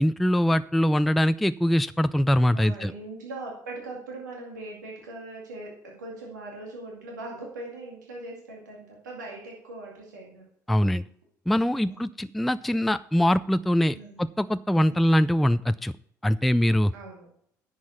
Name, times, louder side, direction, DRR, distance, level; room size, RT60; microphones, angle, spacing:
voice 1, 0.0-2.9 10.7-11.0 11.5-15.9 16.2-16.9, equal, ahead, 13 dB, 0.3 m, -23 dB
voice 2, 2.5-10.4 11.9-12.3 13.9-14.2 14.9-15.1 16.9-17.3, right 2 dB, 85° right, -1 dB, 2.2 m, -40 dB
10.5 x 7.5 x 5.8 m, 0.65 s
hypercardioid pair, 60°, 9 cm